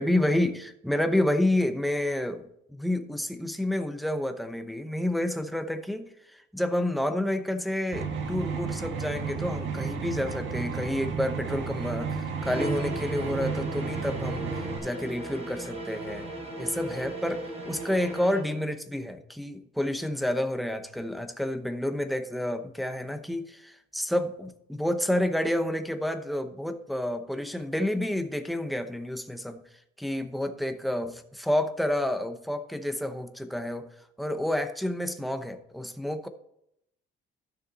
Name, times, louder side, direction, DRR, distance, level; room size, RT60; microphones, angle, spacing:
voice 1, 0.0-16.3 16.6-29.6 30.0-31.1 31.4-33.9 34.2-36.3, left 1 dB, ahead, 7 dB, 0.8 m, -29 dB
sound 1, 7.9-14.8, right 5 dB, 70° right, 1.7 m, -33 dB
sound 2, 12.4-18.5, right 1 dB, 35° right, 3.0 m, -37 dB
12.5 x 6.5 x 4.1 m, 0.76 s
cardioid pair, 140°, 20 cm